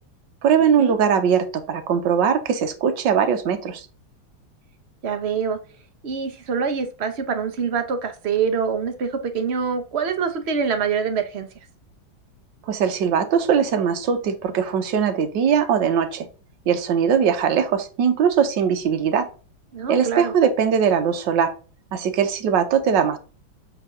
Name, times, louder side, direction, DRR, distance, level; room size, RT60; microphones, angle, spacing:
voice 1, 0.4-3.9 12.7-16.3 16.7-19.3 19.9-21.5 21.9-23.2, right 7 dB, 70° right, 8 dB, 1.5 m, -20 dB
voice 2, 5.0-5.6 6.0-11.5 19.7-20.3, right 6 dB, 50° right, 7 dB, 0.8 m, -25 dB
8.0 x 3.5 x 3.8 m, 0.36 s
omnidirectional pair, 2.1 m